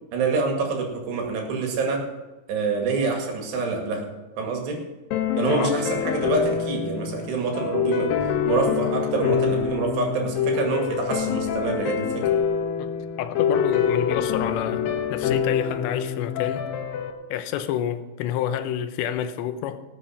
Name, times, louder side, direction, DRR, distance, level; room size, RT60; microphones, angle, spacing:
voice 1, 0.1-2.1 2.5-4.1 4.4-4.9 5.4-8.1 8.4-12.3, right 4 dB, 75° right, 4.2 m, -26 dB
sound 1, 5.1-17.1, left 7 dB, 70° left, 2.4 m, -25 dB
voice 2, 12.8-16.7 17.3-19.8, left 10 dB, 85° left, 3.0 m, -29 dB
18.5 x 7.6 x 5.8 m
omnidirectional pair, 5.0 m